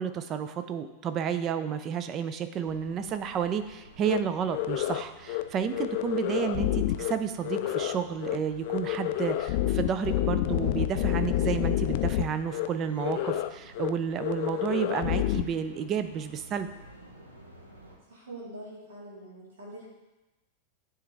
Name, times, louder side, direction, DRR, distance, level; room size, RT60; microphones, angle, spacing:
voice 1, 0.0-16.7, right 8 dB, 30° right, 10 dB, 0.5 m, -31 dB
sound 1, 2.6-18.0, right 1 dB, 80° right, 1.0 m, -52 dB
sound 2, 4.0-4.2 4.5-5.0 5.3-5.4 5.7-7.1 7.4-8.0 8.2-8.4 8.6-12.2 12.5-12.7 13.0-13.5 13.8-13.9 14.2-15.4, left 14 dB, 50° left, 0.3 m, -28 dB
voice 2, 18.1-19.9, right 1 dB, 60° right, -6 dB, 2.0 m, -44 dB
10.0 x 3.4 x 3.4 m, 1.0 s
figure-of-eight pair, 90°, 0 cm